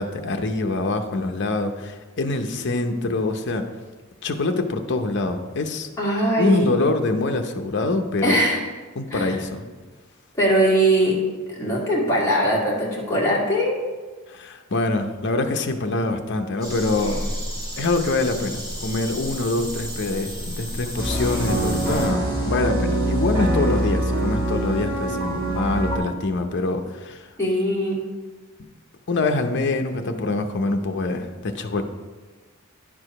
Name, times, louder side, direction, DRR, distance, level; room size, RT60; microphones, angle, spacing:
voice 1, 0.0-3.7 4.2-5.9 6.4-8.4 9.0-9.7 14.3-17.3 17.8-27.3 29.1-31.8, left 2 dB, 55° left, 6 dB, 0.7 m, -25 dB
voice 2, 6.0-6.7 8.2-8.6 9.1-9.4 10.4-11.2 11.5-13.7 27.4-28.0, right 1 dB, 15° left, -6 dB, 2.1 m, -21 dB
sound 1, 16.6-22.1, equal, 20° right, 2.5 m, -33 dB
sound 2, 21.0-26.0, right 1 dB, 65° right, 2.4 m, -24 dB
10.5 x 4.8 x 4.9 m, 1.3 s
head